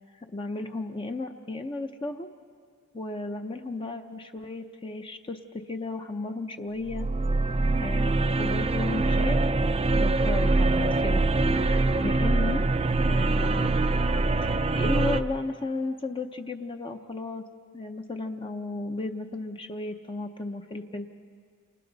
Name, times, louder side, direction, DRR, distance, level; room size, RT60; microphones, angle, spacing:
voice 1, 0.2-2.3 2.9-7.1 7.7-9.5 9.9-11.2 11.5-12.6 13.0-13.8 14.4-17.5 17.7-21.1, left 2 dB, 25° left, 5 dB, 0.6 m, -34 dB
sound 1, 6.9-15.2, right 2 dB, 25° right, 0.5 m, -24 dB
29.5 x 27.5 x 4.0 m, 2.1 s
head